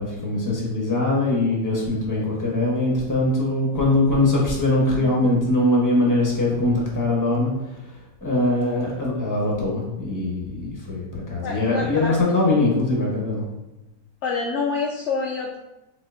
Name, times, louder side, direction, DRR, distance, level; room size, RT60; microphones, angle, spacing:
voice 1, 0.0-7.5 7.8-7.9 8.2-13.4, left 2 dB, 15° left, -3 dB, 0.9 m, -22 dB
voice 2, 4.9-5.3 11.4-12.2 14.2-15.6, left 4 dB, 75° left, -1 dB, 0.6 m, -27 dB
4.7 x 4.1 x 2.6 m, 0.99 s
omnidirectional pair, 1.8 m